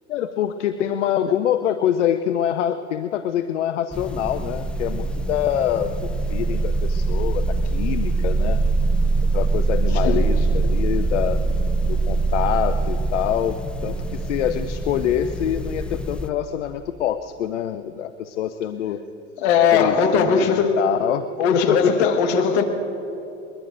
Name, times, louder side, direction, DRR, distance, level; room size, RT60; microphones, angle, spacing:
voice 1, 0.1-8.6 9.3-11.4 11.8-19.0 19.7-21.3 21.5-22.1, left 10 dB, 80° left, 10 dB, 0.6 m, -25 dB
sound 1, 3.9-16.3, right 3 dB, 5° left, 0.5 m, -23 dB
voice 2, 9.9-10.3 19.4-20.8 21.4-22.6, left 6 dB, 65° left, 6 dB, 1.6 m, -19 dB
23.0 x 21.0 x 2.6 m, 2.9 s
hypercardioid pair, 90°, 35 cm